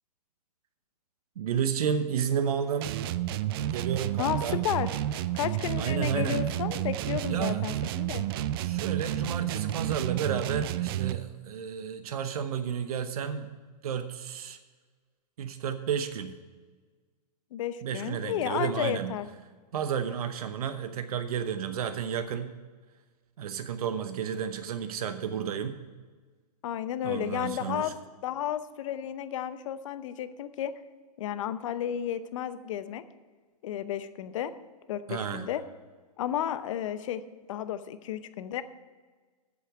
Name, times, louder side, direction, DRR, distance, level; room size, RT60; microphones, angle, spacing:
voice 1, 1.4-3.0 3.7-4.6 5.8-6.4 7.3-7.6 8.6-13.5 13.8-14.6 15.4-16.3 17.8-19.1 19.7-22.5 23.4-25.8 27.0-27.9 35.1-35.5, right 8 dB, 65° right, 9 dB, 0.9 m, -31 dB
sound 1, 2.8-11.3, right 13 dB, 35° right, 0.4 m, -31 dB
voice 2, 4.2-5.0 5.3-8.3 17.5-19.3 26.6-27.9 28.2-30.8 31.2-33.0 33.6-34.5 34.9-35.6 36.2-38.6, left 10 dB, 50° left, 13 dB, 0.7 m, -32 dB
8.4 x 7.2 x 8.2 m, 1.4 s
hypercardioid pair, 130°, 21 cm